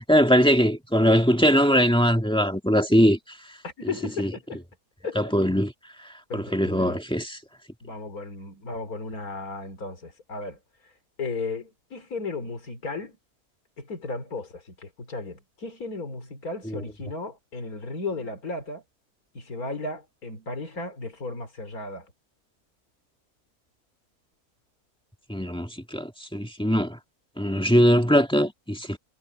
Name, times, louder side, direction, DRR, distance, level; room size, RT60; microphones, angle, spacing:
voice 1, 0.0-3.2 4.2-4.3 5.2-5.7 6.3-7.3 25.3-27.0 27.4-29.0, equal, 5° left, 1.7 m, -21 dB
voice 2, 3.6-4.6 5.0-5.3 6.3-7.0 7.8-10.9 11.2-13.2 13.8-18.8 19.3-22.1, left 3 dB, 70° left, 4.1 m, -35 dB
omnidirectional pair, 1.6 m